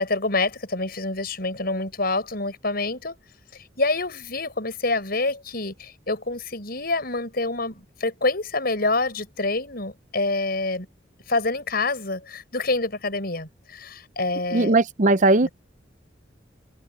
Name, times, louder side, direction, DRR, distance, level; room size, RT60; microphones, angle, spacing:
voice 1, 0.0-3.2 3.8-10.9 11.3-14.7 15.4-15.5, left 2 dB, 55° left, 7.2 m, -27 dB
voice 2, 14.5-15.5, right 2 dB, 40° right, 0.7 m, -18 dB
head